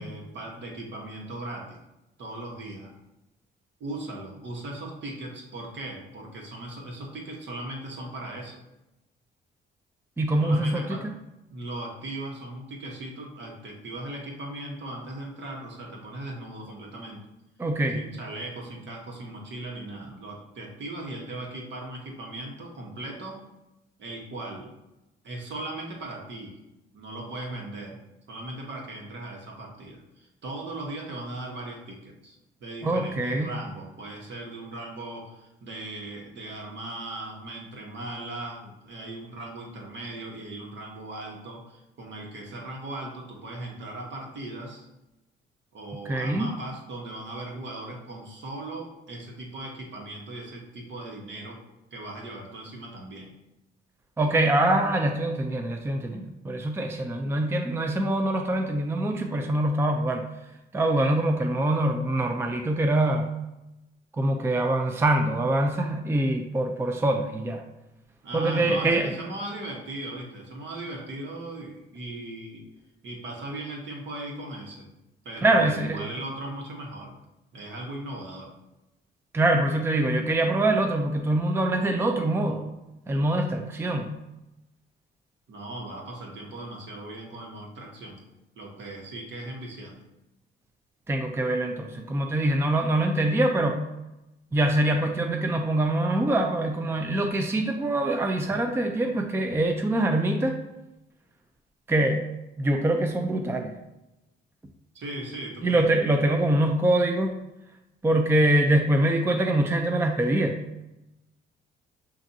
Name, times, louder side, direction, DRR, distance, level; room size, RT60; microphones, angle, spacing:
voice 1, 0.0-1.8 2.2-2.9 3.8-8.6 10.4-11.1 11.5-17.2 17.9-23.4 24.0-24.7 25.2-26.6 26.9-28.0 28.3-44.9 45.7-51.6 51.9-53.3 68.2-72.6 73.0-74.9 75.2-77.1 77.5-78.5 85.5-88.2 88.6-90.0 104.9-105.9, right 1 dB, 65° right, 0 dB, 1.2 m, -38 dB
voice 2, 10.2-11.1 17.6-18.0 32.8-33.5 46.1-46.5 54.2-60.2 60.7-63.3 64.2-67.6 68.3-69.1 75.4-76.0 79.3-82.7 83.1-84.1 91.1-93.8 94.5-100.6 101.9-102.2 102.6-103.8 105.6-107.4 108.0-110.6, right 1 dB, 10° right, 4 dB, 0.4 m, -24 dB
7.0 x 2.6 x 2.7 m, 0.94 s
cardioid pair, 90°, 20 cm